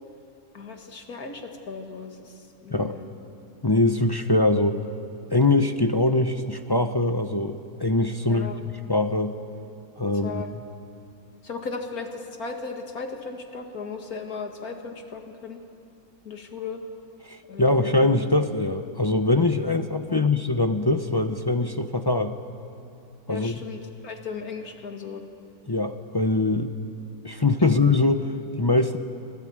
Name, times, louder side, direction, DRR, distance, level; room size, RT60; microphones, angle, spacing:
voice 1, 0.5-3.1 8.3-8.6 10.2-10.5 11.4-15.6 16.2-16.8 17.5-18.0 20.1-20.2 23.3-25.2 27.6-27.7, left 4 dB, 80° left, 4 dB, 2.4 m, -36 dB
voice 2, 3.6-4.8 5.3-9.4 10.0-10.4 17.3-22.4 23.3-23.6 25.7-26.8 27.2-29.0, left 2 dB, 30° left, 7 dB, 0.5 m, -23 dB
25.5 x 17.0 x 8.8 m, 2.7 s
omnidirectional pair, 1.6 m